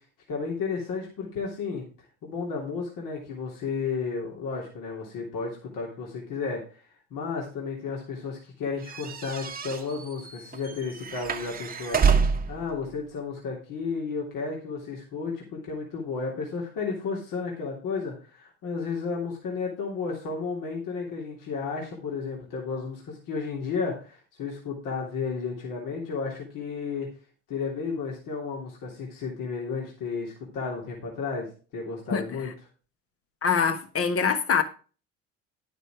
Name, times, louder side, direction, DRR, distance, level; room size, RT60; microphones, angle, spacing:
voice 1, 0.3-1.8 2.2-6.8 7.1-27.1 27.5-32.5, left 5 dB, 65° left, 3.1 m, -33 dB
sound 1, 8.9-12.6, right 6 dB, 25° right, 1.1 m, -27 dB
voice 2, 33.4-34.6, left 6 dB, 40° left, 1.5 m, -24 dB
10.0 x 6.6 x 4.7 m
hypercardioid pair, 70°, 35 cm